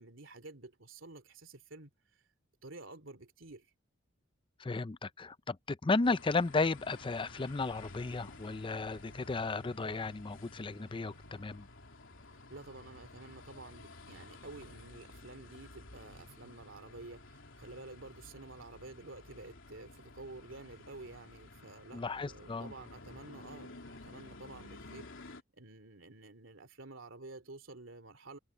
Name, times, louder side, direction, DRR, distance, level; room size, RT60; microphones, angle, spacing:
voice 1, 0.0-1.9 2.6-3.7 12.5-28.4, right 2 dB, 70° right, 3.3 m, -50 dB
voice 2, 4.6-11.7 21.9-22.7, left 3 dB, 25° left, 0.5 m, -34 dB
sound 1, 6.0-25.4, left 2 dB, 70° left, 3.5 m, -53 dB
head